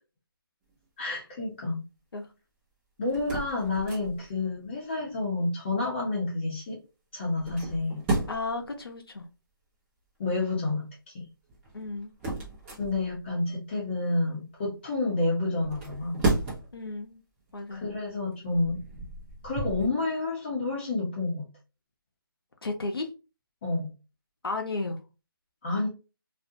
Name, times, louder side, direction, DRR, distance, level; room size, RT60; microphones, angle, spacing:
voice 1, 1.0-1.8 3.0-6.8 7.1-8.1 10.2-10.9 11.1-11.3 12.8-16.3 17.7-18.8 19.4-21.5 23.6-23.9 25.6-25.9, left 2 dB, 25° left, 0.7 m, -29 dB
sound 1, 3.1-4.4 7.3-8.6 11.5-13.3 15.6-16.9 17.4-17.6 18.3-19.9, right 2 dB, 10° right, 0.6 m, -33 dB
voice 2, 8.3-9.3 11.7-12.1 16.7-17.2 17.5-17.9 22.6-23.1 24.4-25.0, left 3 dB, 85° left, 0.7 m, -33 dB
2.4 x 2.1 x 2.7 m
figure-of-eight pair, 160°, 12 cm